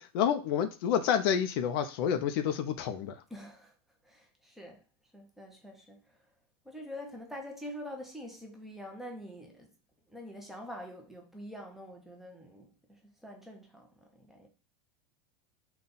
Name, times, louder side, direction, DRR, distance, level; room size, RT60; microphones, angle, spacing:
voice 1, 0.0-3.1, left 8 dB, 55° left, 0.5 m, -29 dB
voice 2, 3.3-3.7 4.0-4.8 5.1-6.2 6.6-9.7 10.1-14.5, equal, ahead, 0.6 m, -45 dB
3.9 x 2.3 x 3.8 m
supercardioid pair, 160°, 15 cm